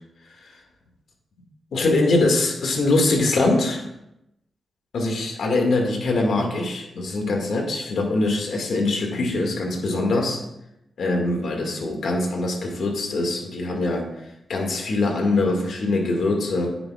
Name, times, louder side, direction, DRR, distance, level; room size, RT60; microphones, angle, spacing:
voice 1, 1.7-3.8 4.9-10.4 11.0-14.1 14.5-16.8, left 2 dB, 75° left, 1 dB, 1.9 m, -23 dB
14.0 x 7.0 x 2.4 m, 0.86 s
cardioid pair, 60°, 0 cm